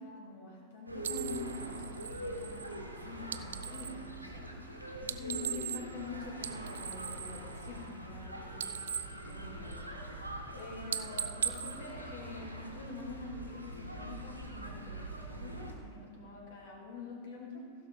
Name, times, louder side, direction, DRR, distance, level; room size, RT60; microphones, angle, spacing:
voice 1, 0.0-4.6 5.0-9.9 10.5-17.7, left 3 dB, 55° left, -3 dB, 3.1 m, -46 dB
sound 1, 0.9-15.7, right 1 dB, 85° right, 1.4 m, -44 dB
sound 2, 1.0-4.0 5.0-6.1 6.3-8.2 8.5-10.0 10.4-10.6 10.9-12.7, right 8 dB, 65° right, 0.4 m, -40 dB
15.5 x 6.7 x 5.1 m, 2.3 s
figure-of-eight pair, 90°, 0 cm